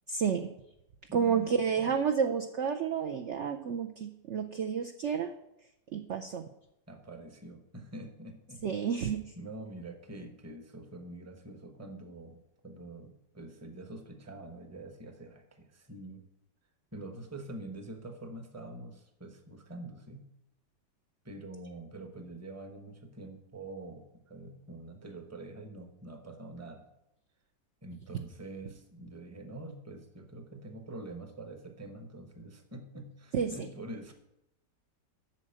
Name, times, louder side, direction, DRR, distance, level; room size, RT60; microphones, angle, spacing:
voice 1, 0.1-0.5 1.1-5.3 5.9-6.5 8.6-9.2 33.3-33.7, right 7 dB, 65° right, 6 dB, 0.7 m, -30 dB
voice 2, 1.1-2.0 6.9-8.9 9.4-16.2 16.9-20.3 21.2-26.8 27.8-34.1, right 2 dB, 10° right, 5 dB, 0.8 m, -45 dB
8.6 x 6.5 x 7.6 m, 0.85 s
omnidirectional pair, 1.9 m